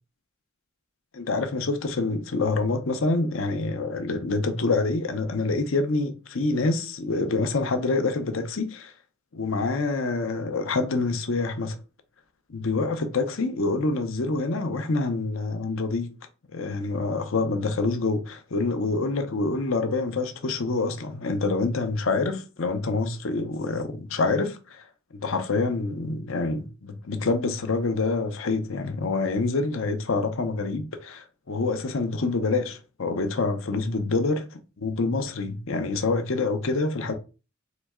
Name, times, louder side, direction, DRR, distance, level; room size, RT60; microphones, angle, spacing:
voice 1, 1.1-8.9 9.3-11.8 12.5-16.1 16.5-24.8 25.1-37.1, left 3 dB, 70° left, 0.7 m, -26 dB
4.0 x 3.2 x 3.5 m
head